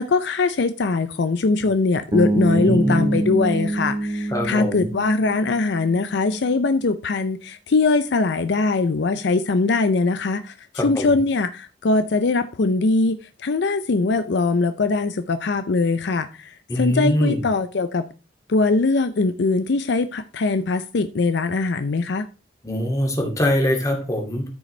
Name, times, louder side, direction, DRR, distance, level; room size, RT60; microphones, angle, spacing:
voice 1, 0.0-18.1 18.5-22.3, left 3 dB, 65° left, 0.5 m, -21 dB
Bass guitar, 2.1-6.2, right 1 dB, 20° right, 0.5 m, -25 dB
voice 2, 2.5-3.2 4.3-4.9 10.7-11.2 16.7-17.4 22.6-24.4, equal, 20° left, 2.2 m, -23 dB
13.5 x 5.1 x 3.2 m
head